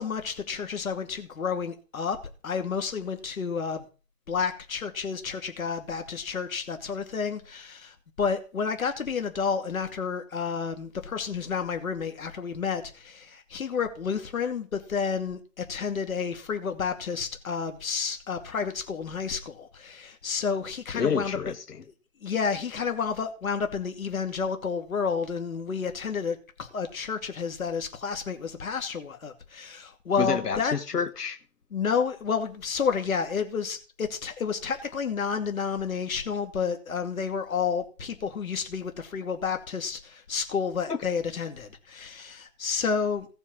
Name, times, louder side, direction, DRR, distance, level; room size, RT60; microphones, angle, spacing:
voice 1, 0.0-2.2 2.4-3.9 4.3-21.4 22.2-30.7 31.7-43.3, left 6 dB, 60° left, 2.6 m, -30 dB
voice 2, 20.9-21.8 30.2-31.4 40.9-41.0, left 6 dB, 85° left, 1.5 m, -29 dB
15.5 x 7.1 x 6.2 m
hypercardioid pair, 165°, 46 cm